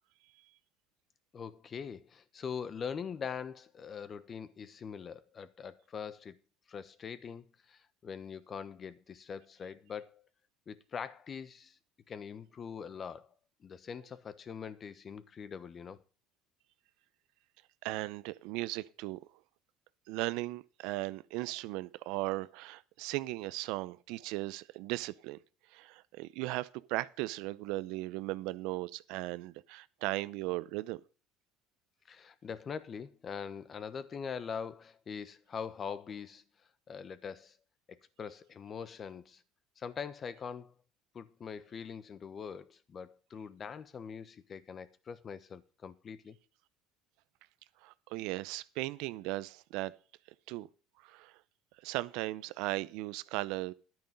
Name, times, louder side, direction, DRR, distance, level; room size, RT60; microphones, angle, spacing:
voice 1, 1.3-6.4 6.7-10.2 10.7-11.8 12.1-13.3 13.6-16.0 32.1-36.4 36.9-37.6 37.9-39.4 39.8-40.7 41.1-46.4, left 6 dB, 40° left, 1.1 m, -43 dB
voice 2, 17.8-19.2 20.1-25.4 25.7-31.0 47.8-49.9 50.5-50.7 51.0-51.4 51.8-53.7, right 19 dB, 70° right, 0.6 m, -37 dB
11.0 x 9.1 x 5.3 m
hypercardioid pair, 80°, 0 cm